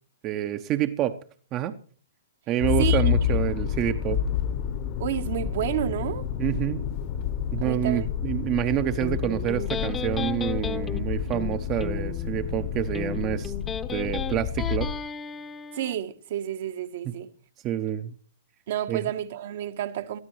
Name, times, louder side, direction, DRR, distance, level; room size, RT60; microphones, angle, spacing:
voice 1, 0.2-1.1 1.5-1.7 2.5-4.2 6.4-6.8 7.5-13.5 13.9-14.9 17.6-18.1 18.9-19.0, right 12 dB, 30° right, 0.9 m, -27 dB
Motor vehicle (road), 2.6-15.0, left 9 dB, 45° left, 1.3 m, -29 dB
voice 2, 5.0-6.3 7.6-8.1 15.7-17.3 18.7-20.2, right 11 dB, 55° right, 1.3 m, -30 dB
Electric guitar, 9.0-16.0, left 6 dB, 15° left, 1.0 m, -35 dB
22.0 x 13.5 x 3.1 m
figure-of-eight pair, 115°, 0 cm